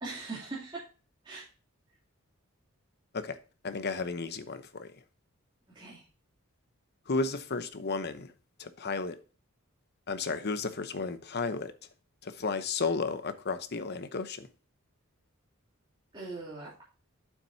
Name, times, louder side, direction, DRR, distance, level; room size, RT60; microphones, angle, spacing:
voice 1, 0.0-0.8 1.2-1.4 5.7-6.0 16.1-16.9, right 3 dB, 20° right, 2.9 m, -40 dB
voice 2, 3.6-4.9 7.1-8.3 8.6-9.2 10.1-11.7 12.2-14.5, left 4 dB, 50° left, 0.9 m, -33 dB
9.0 x 7.3 x 2.7 m
head